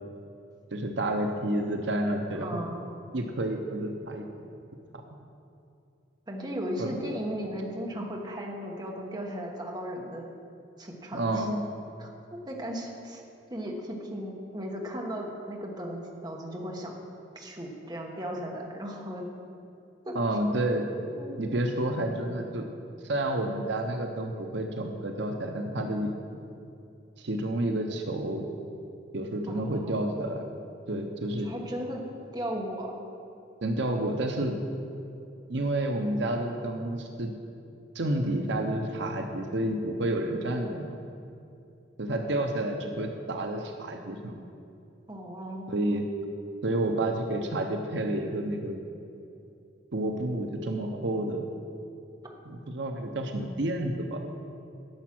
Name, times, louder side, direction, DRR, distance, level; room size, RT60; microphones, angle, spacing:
voice 1, 0.7-2.6 3.1-4.2 6.8-7.0 11.1-11.7 20.1-20.9 21.4-22.7 23.0-26.1 27.2-28.4 29.1-30.4 30.9-31.5 33.6-34.6 35.5-37.3 37.9-41.0 42.0-44.3 45.7-46.1 46.6-48.8 49.9-51.4 52.5-54.2, right 1 dB, 65° right, 4 dB, 0.7 m, -30 dB
voice 2, 2.3-2.9 6.3-10.3 10.8-11.4 12.0-12.1 12.5-13.2 13.5-16.9 17.3-19.2 20.0-20.1 21.2-21.5 29.5-29.9 31.4-32.0 32.3-32.9 45.1-45.7 52.2-52.3, equal, 20° right, 0 dB, 1.2 m, -36 dB
10.5 x 7.1 x 6.0 m, 2.6 s
head